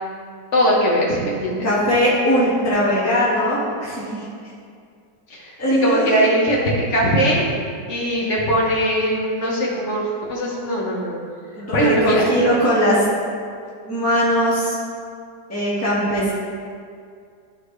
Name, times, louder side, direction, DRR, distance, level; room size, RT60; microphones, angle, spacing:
voice 1, 0.5-1.7 5.3-7.5 7.9-11.2 11.7-12.2, equal, 40° left, -4 dB, 1.5 m, -20 dB
voice 2, 1.6-4.3 5.6-6.2 11.5-13.0 13.9-14.7 15.5-16.3, equal, 10° left, -9 dB, 1.6 m, -19 dB
12.5 x 4.5 x 3.3 m, 2.2 s
omnidirectional pair, 2.0 m